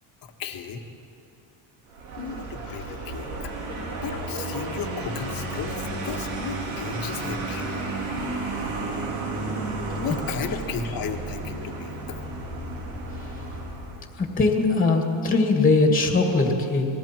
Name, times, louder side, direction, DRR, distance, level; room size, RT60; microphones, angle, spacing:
voice 1, 0.4-0.8 2.2-7.8 10.0-12.2, left 6 dB, 50° left, 5 dB, 1.6 m, -34 dB
Vehicle, 1.9-14.1, right 2 dB, 80° right, 4.5 m, -32 dB
voice 2, 14.2-16.9, left 3 dB, 20° left, 2 dB, 2.1 m, -20 dB
28.5 x 20.5 x 4.5 m, 2.8 s
cardioid pair, 165°, 46 cm